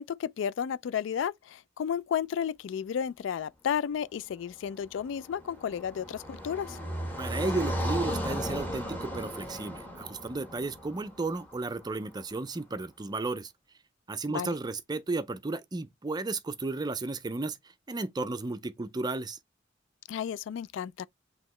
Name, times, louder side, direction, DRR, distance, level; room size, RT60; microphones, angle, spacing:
voice 1, 0.0-6.8 14.3-14.5 20.1-21.1, left 8 dB, 75° left, 0.3 m, -32 dB
Car passing by, 4.7-11.9, equal, 10° left, 1.5 m, -36 dB
voice 2, 7.2-13.5 14.1-17.6 17.9-19.4, right 3 dB, 20° right, 0.4 m, -33 dB
5.5 x 3.0 x 3.1 m
head